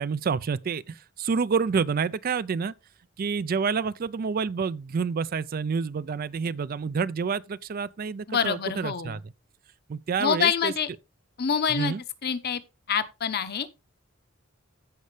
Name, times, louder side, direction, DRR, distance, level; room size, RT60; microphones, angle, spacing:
voice 1, 0.0-2.7 3.2-9.2 9.9-10.7 11.7-12.0, right 5 dB, 45° right, 0.4 m, -28 dB
voice 2, 8.3-9.2 10.2-10.9 11.4-11.9 12.2-12.6 12.9-13.7, left 7 dB, 50° left, 0.9 m, -26 dB
15.0 x 5.4 x 3.2 m
head